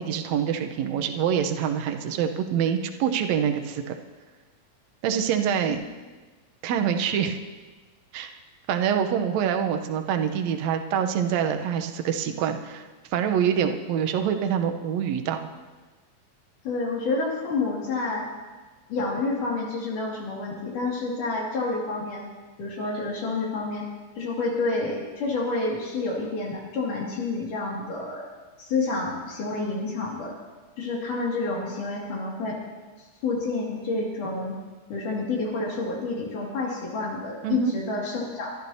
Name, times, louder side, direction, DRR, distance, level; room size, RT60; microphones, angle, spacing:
voice 1, 0.0-4.0 5.0-5.8 6.6-7.4 8.1-8.3 8.7-12.9 13.1-15.5 37.4-37.7, right 8 dB, 70° right, 5 dB, 1.8 m, -25 dB
voice 2, 16.6-18.3 18.9-22.2 22.6-23.9 24.2-28.2 28.6-30.3 30.8-32.6 33.2-34.6 34.9-38.5, left 3 dB, 65° left, -3 dB, 3.8 m, -29 dB
24.5 x 12.5 x 2.8 m, 1.3 s
omnidirectional pair, 3.9 m